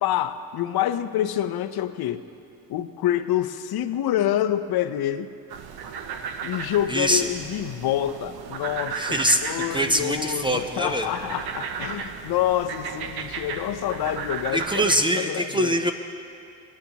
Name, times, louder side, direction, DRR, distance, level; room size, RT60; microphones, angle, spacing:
voice 1, 0.0-2.2 2.7-5.3 6.4-15.8, left 11 dB, 60° left, 10 dB, 0.6 m, -27 dB
sound 1, 5.5-15.0, right 6 dB, 60° right, 0.8 m, -35 dB
voice 2, 6.9-7.3 9.0-11.1 14.5-15.9, equal, 10° right, 5 dB, 0.5 m, -23 dB
17.0 x 9.3 x 2.9 m, 2.5 s
cardioid pair, 80°, 43 cm